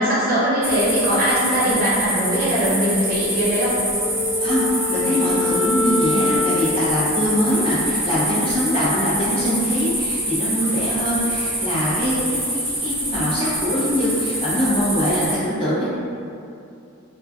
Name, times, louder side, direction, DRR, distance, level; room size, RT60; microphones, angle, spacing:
voice 1, 0.0-3.8, equal, 40° right, -9 dB, 0.8 m, -20 dB
sound 1, 0.6-15.3, right 1 dB, 10° right, 0.5 m, -25 dB
Wind instrument woodwind instrument, 3.9-8.4, left 3 dB, 90° right, 0.6 m, -26 dB
voice 2, 4.4-15.9, equal, 25° left, -11 dB, 0.7 m, -23 dB
2.4 x 2.2 x 3.6 m, 2.6 s
head